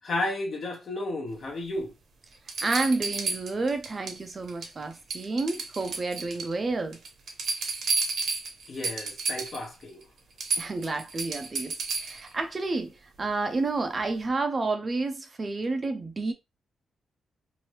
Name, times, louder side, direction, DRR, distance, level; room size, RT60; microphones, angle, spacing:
voice 1, 0.0-1.9 8.7-10.0, left 2 dB, 45° left, 0.9 m, -32 dB
sound 1, 1.8-1.9 2.5-4.2 4.5-4.8 5.1-6.5 6.9-9.6 10.0-10.1 10.4-12.3 14.0-14.1, right 4 dB, 65° right, 0.8 m, -31 dB
voice 2, 2.6-7.0 10.6-16.3, right 3 dB, 30° right, 0.5 m, -30 dB
2.9 x 2.6 x 3.1 m
wide cardioid pair, 135°, 0 cm